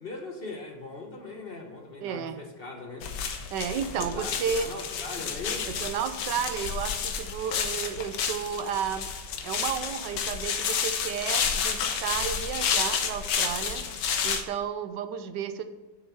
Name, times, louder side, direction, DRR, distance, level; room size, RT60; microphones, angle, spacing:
voice 1, 0.0-3.1 4.0-5.8, left 3 dB, 40° left, 3 dB, 1.1 m, -40 dB
voice 2, 2.0-2.4 3.5-4.7 5.7-9.1 9.4-15.6, right 8 dB, 85° right, 10 dB, 1.3 m, -32 dB
sound 1, 3.0-14.4, left 7 dB, 85° left, 1.4 m, -30 dB
7.7 x 6.3 x 7.0 m, 1.2 s
omnidirectional pair, 1.8 m